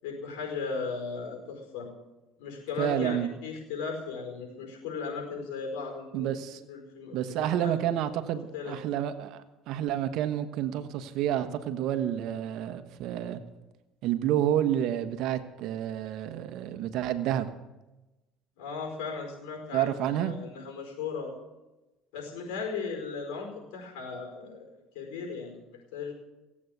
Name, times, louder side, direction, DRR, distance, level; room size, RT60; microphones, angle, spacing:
voice 1, 0.0-1.9 2.4-6.3 6.7-7.7 8.5-8.8 18.6-21.3 22.1-24.7 24.9-25.6 25.9-26.1, left 5 dB, 85° left, 2 dB, 4.9 m, -36 dB
voice 2, 2.8-3.3 6.1-6.6 7.1-13.4 14.0-17.5 19.7-20.3, right 11 dB, 70° right, 10 dB, 1.3 m, -29 dB
17.0 x 8.6 x 8.1 m, 1.0 s
supercardioid pair, 85°, 0 cm